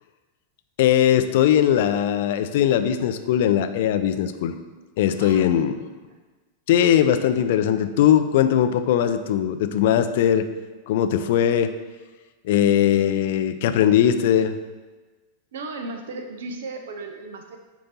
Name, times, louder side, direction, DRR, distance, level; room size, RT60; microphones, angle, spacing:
voice 1, 0.8-4.6 5.0-5.8 6.7-10.5 10.9-11.7 12.4-14.5, left 10 dB, 55° left, 10 dB, 0.4 m, -20 dB
voice 2, 5.1-5.5 6.1-6.2 15.5-17.6, right 3 dB, 60° right, 5 dB, 0.6 m, -35 dB
8.3 x 2.8 x 4.0 m, 1.3 s
figure-of-eight pair, 90°, 0 cm